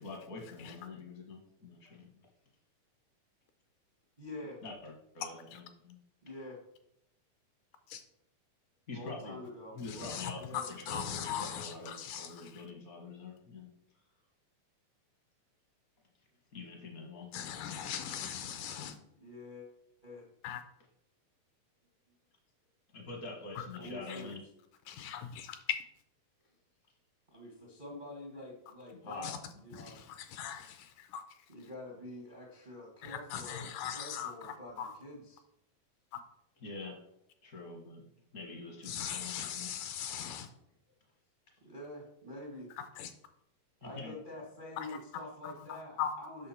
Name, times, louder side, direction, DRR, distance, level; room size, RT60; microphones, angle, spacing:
voice 1, 0.0-2.1 4.6-6.0 8.9-9.4 9.7-13.7 16.5-17.3 22.9-24.4 25.0-25.3 29.0-29.4 30.0-30.1 36.6-37.0 37.4-38.0 38.3-39.7 43.8-44.1, left 3 dB, 60° left, 0.9 m, -45 dB
voice 2, 4.2-4.6 6.2-6.6 8.9-10.6 19.2-19.7 20.0-20.3 23.8-24.3 27.3-29.3 29.6-30.0 31.5-35.4 41.6-42.7 43.8-46.5, left 1 dB, 80° right, 0.4 m, -47 dB
voice 3, 10.9-12.5 17.3-19.0 20.4-20.6 24.1-24.2 24.9-25.8 29.2-29.3 29.7-31.2 33.0-34.9 38.9-40.5 43.0-43.1 44.8-44.9 45.7-46.1, left 9 dB, 80° left, 2.0 m, -39 dB
8.7 x 6.3 x 4.3 m
omnidirectional pair, 4.0 m